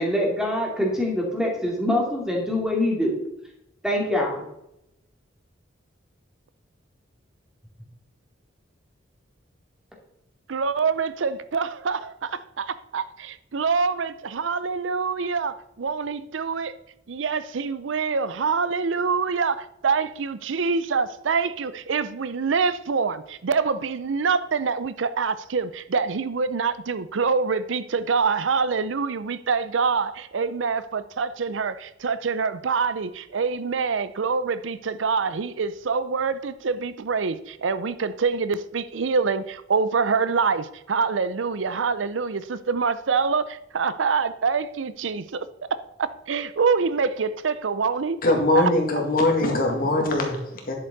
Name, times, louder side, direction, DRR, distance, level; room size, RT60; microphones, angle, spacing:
voice 1, 0.0-3.2 3.8-4.4, left 1 dB, 5° right, 2.6 m, -24 dB
voice 2, 10.5-16.7 17.1-48.2 48.5-48.7, right 5 dB, 90° right, 0.6 m, -25 dB
voice 3, 48.2-50.7, left 2 dB, 50° left, 2.2 m, -22 dB
10.5 x 7.9 x 4.1 m
head